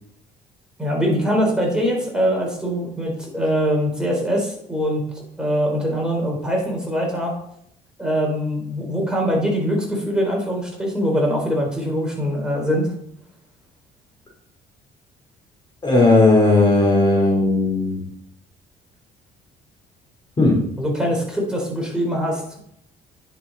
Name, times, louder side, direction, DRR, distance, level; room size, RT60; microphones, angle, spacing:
voice 1, 0.8-5.0 5.4-7.4 8.0-12.9 20.8-22.6, equal, 5° right, -2 dB, 4.1 m, -22 dB
voice 2, 15.8-18.0 20.4-20.6, left 2 dB, 25° left, -2 dB, 3.2 m, -16 dB
10.0 x 6.9 x 4.1 m, 0.70 s
cardioid pair, 110°, 17 cm